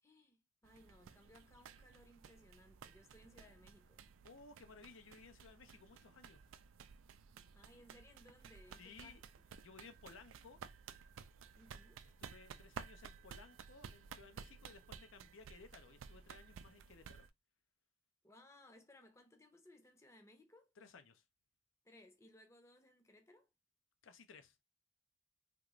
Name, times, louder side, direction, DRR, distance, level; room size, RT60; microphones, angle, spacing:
voice 1, 0.0-4.1 7.5-9.4 11.6-12.0 18.2-20.7 21.8-23.5, left 1 dB, 15° left, 0.6 m, -63 dB
sound 1, 0.6-17.3, right 6 dB, 90° right, 0.4 m, -55 dB
voice 2, 4.2-6.4 8.8-9.2 9.6-10.6 12.2-17.3 20.8-21.2 24.0-24.6, left 4 dB, 90° left, 0.6 m, -59 dB
3.6 x 2.4 x 2.9 m
head